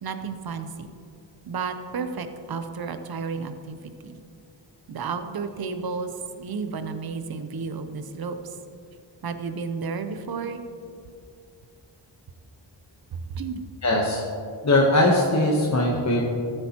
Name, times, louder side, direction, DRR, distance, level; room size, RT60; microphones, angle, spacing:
voice 1, 0.0-0.9 1.5-4.2 4.9-6.1 6.4-8.6 9.2-10.6 13.1-13.6, right 5 dB, 55° right, 9 dB, 0.7 m, -32 dB
voice 2, 13.8-14.2 14.6-16.2, left 1 dB, 40° left, -2 dB, 1.0 m, -20 dB
14.0 x 7.9 x 2.9 m, 2.4 s
wide cardioid pair, 110°, 45 cm